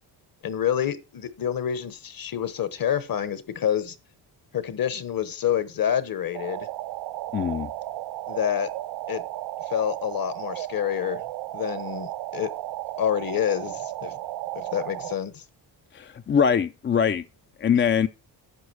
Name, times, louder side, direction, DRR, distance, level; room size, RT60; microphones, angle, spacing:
voice 1, 0.4-3.9 4.5-6.7 8.3-8.7 9.1-9.2 9.7-11.2 11.5-12.5 13.0-14.2 14.5-15.4, left 9 dB, 50° left, 1.2 m, -27 dB
sound 1, 6.3-15.2, right 15 dB, 70° right, 0.5 m, -34 dB
voice 2, 7.3-7.7 15.9-17.2 17.6-18.1, left 7 dB, 30° left, 0.4 m, -22 dB
9.7 x 6.3 x 4.7 m
cardioid pair, 105°, 43 cm